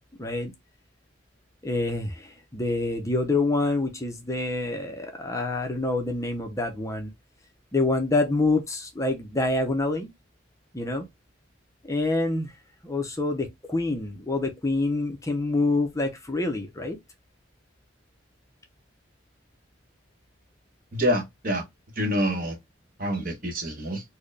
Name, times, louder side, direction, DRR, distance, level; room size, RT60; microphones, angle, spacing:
voice 1, 0.2-0.5 1.6-7.1 7.7-10.1 10.7-11.1 11.8-12.5 12.8-17.0, left 2 dB, 15° left, 0.5 m, -26 dB
voice 2, 20.9-21.6 22.0-22.5 23.0-24.0, equal, 45° right, 1.0 m, -26 dB
4.4 x 2.1 x 3.2 m
head